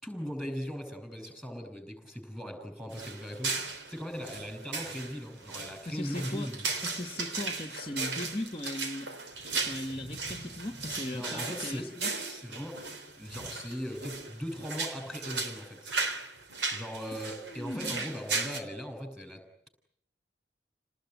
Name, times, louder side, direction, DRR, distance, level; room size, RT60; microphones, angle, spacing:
voice 1, 0.0-3.6 3.9-6.7 11.1-11.9 12.2-15.9 16.7-19.7, equal, ahead, 7 dB, 6.4 m, -39 dB
sound 1, 2.9-18.6, right 4 dB, 80° right, 3.4 m, -37 dB
voice 2, 5.8-6.5 6.8-9.1 9.5-12.1 17.1-18.1, left 1 dB, 30° left, 6 dB, 1.2 m, -38 dB
29.5 x 19.5 x 9.3 m, 0.72 s
head